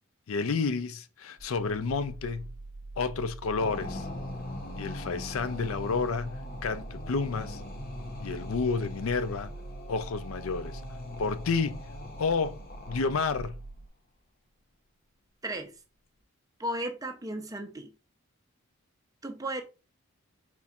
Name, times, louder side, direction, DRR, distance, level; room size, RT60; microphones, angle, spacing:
voice 1, 0.3-2.5 3.0-4.1 4.8-7.6 8.2-9.5 9.9-10.8 11.2-11.8 12.2-12.6 12.9-13.6, left 4 dB, 75° left, 0.5 m, -30 dB
sound 1, 1.4-13.9, right 2 dB, 55° right, 0.9 m, -44 dB
sound 2, 3.6-13.5, left 2 dB, 45° left, 0.8 m, -41 dB
voice 2, 15.4-15.8 16.6-17.9 19.2-19.6, right 1 dB, 15° right, 0.5 m, -35 dB
4.2 x 4.2 x 2.4 m
head